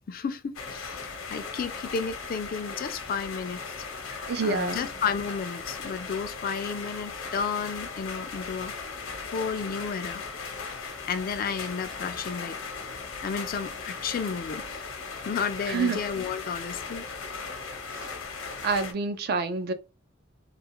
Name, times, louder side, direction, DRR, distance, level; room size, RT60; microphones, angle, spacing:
voice 1, 0.1-3.7 4.4-8.7 9.3-10.2 11.1-12.6 13.2-14.9 15.2-17.0, left 6 dB, 45° left, 0.3 m, -32 dB
sound 1, 0.5-18.9, left 4 dB, 85° left, 0.7 m, -38 dB
voice 2, 4.3-4.8 15.7-16.0 17.9-18.1 18.6-19.7, right 4 dB, 50° right, 0.4 m, -27 dB
2.4 x 2.4 x 2.9 m
head